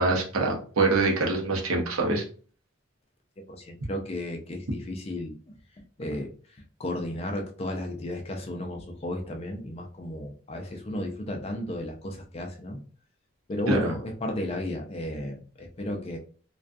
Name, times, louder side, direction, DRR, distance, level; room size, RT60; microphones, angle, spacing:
voice 1, 0.0-2.2 13.7-13.8, right 3 dB, 90° right, 1 dB, 0.7 m, -24 dB
voice 2, 3.5-12.8 13.5-16.2, left 1 dB, 30° left, 3 dB, 0.4 m, -34 dB
2.3 x 2.3 x 2.5 m, 0.42 s
head